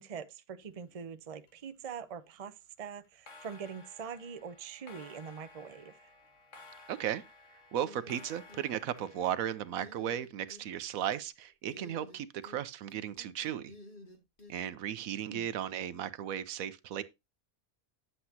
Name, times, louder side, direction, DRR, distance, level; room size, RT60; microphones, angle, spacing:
voice 1, 0.0-6.1 15.2-15.5, right 7 dB, 35° right, 0.6 m, -44 dB
sound 1, 0.6-2.2 3.1-9.9, left 2 dB, 60° left, 1.9 m, -56 dB
voice 2, 6.9-7.2 7.7-13.7 14.5-17.0, right 10 dB, 80° right, 1.1 m, -35 dB
sound 2, 7.8-8.7 9.0-9.4 9.8-10.6 11.7-12.6 12.9-14.5, left 2 dB, 35° left, 2.4 m, -52 dB
9.6 x 8.0 x 2.8 m
omnidirectional pair, 1.5 m